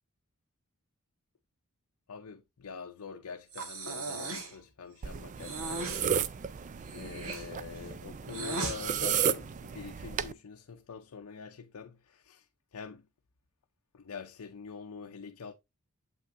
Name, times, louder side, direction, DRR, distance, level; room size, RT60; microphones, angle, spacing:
voice 1, 2.1-6.3 6.9-12.5 12.7-13.0 13.9-15.5, left 6 dB, 75° left, 0.6 m, -45 dB
Breathing, 3.5-4.6 5.4-6.0 6.8-8.8, right 3 dB, 65° right, 1.4 m, -37 dB
sound 1, 5.0-10.3, right 8 dB, 35° right, 0.3 m, -34 dB
7.4 x 5.8 x 2.5 m
head